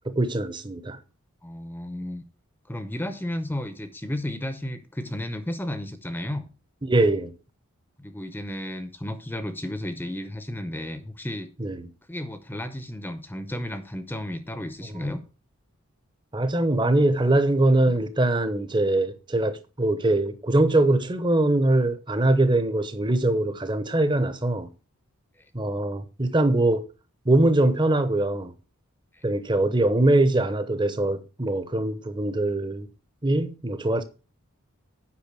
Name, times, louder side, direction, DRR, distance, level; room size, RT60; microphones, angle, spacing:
voice 1, 0.0-1.0 6.8-7.3 11.6-11.9 14.9-15.1 16.3-24.7 25.5-26.9 27.2-28.5 29.2-32.9 33.2-34.0, right 2 dB, 20° right, 0.8 m, -22 dB
voice 2, 1.4-2.2 2.7-6.5 8.0-11.5 12.1-15.2 29.1-29.2, left 1 dB, 10° left, 0.7 m, -33 dB
8.5 x 5.5 x 6.8 m
head